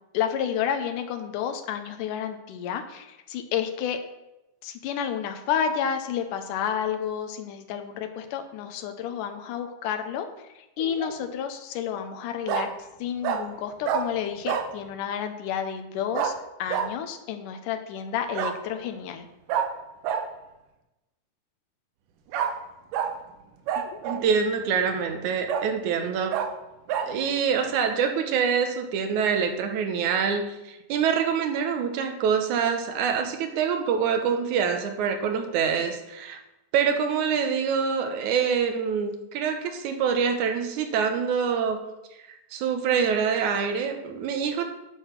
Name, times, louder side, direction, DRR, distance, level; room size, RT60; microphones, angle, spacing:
voice 1, 0.1-4.0 4.6-10.3 10.8-12.7 13.0-16.3 16.6-19.3, left 8 dB, 90° left, 6 dB, 2.4 m, -30 dB
Bark, 10.8-11.2 12.5-12.7 13.2-13.4 13.8-14.0 14.5-14.7 16.1-16.3 16.7-16.9 18.3-18.6 19.5-19.7 20.0-20.2 22.3-22.5 22.9-23.1 23.7-24.3 24.8-24.9 25.5-25.7 26.3-26.5 26.9-27.1, right 8 dB, 90° right, 2.4 m, -27 dB
voice 2, 24.0-26.4 27.1-36.4 36.7-41.8 42.5-44.7, right 6 dB, 75° right, 6 dB, 2.3 m, -25 dB
9.1 x 5.6 x 5.8 m, 0.96 s
omnidirectional pair, 3.6 m